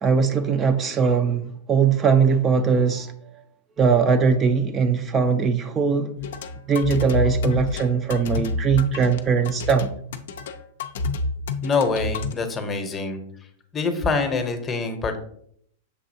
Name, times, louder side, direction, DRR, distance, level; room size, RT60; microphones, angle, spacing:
voice 1, 0.0-3.1 3.8-6.1 6.7-9.9, right 5 dB, 25° right, 0.4 m, -20 dB
sound 1, 6.2-12.3, left 3 dB, 70° left, 0.4 m, -28 dB
voice 2, 11.6-13.2 13.7-15.2, left 4 dB, 25° left, 0.8 m, -25 dB
6.7 x 2.7 x 2.7 m
hypercardioid pair, 105°, 0 cm